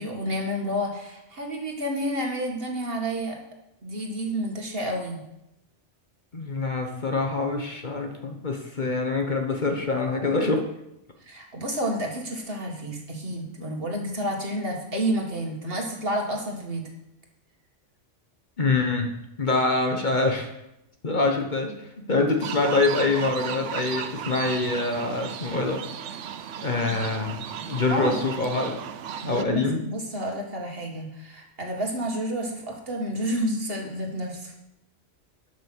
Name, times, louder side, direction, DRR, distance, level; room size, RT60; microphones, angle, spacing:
voice 1, 0.0-3.4 3.8-5.2 11.2-16.9 26.8-26.9 27.9-28.2 29.2-34.5, equal, 55° right, 1 dB, 2.1 m, -30 dB
voice 2, 6.3-10.7 18.6-19.1 19.4-20.5 21.0-25.8 26.6-28.8 29.2-29.8, left 3 dB, 40° left, 4 dB, 1.3 m, -25 dB
sound 1, 22.4-29.4, right 8 dB, 85° right, 1.0 m, -35 dB
12.0 x 6.3 x 6.2 m, 0.85 s
omnidirectional pair, 1.2 m